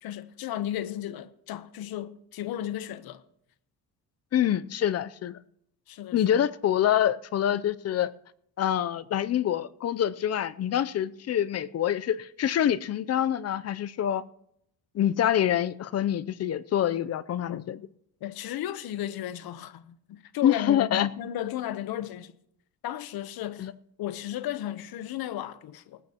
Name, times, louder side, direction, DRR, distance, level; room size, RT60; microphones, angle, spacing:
voice 1, 0.0-3.2 5.9-6.2 18.2-22.3 22.8-23.7 24.0-26.0, left 12 dB, 70° left, 0.9 m, -34 dB
voice 2, 4.3-5.4 6.1-8.1 8.6-14.2 14.9-17.8 20.4-21.1 23.6-23.7, left 10 dB, 45° left, 0.5 m, -26 dB
19.0 x 15.5 x 2.9 m
cardioid pair, 125°, 38 cm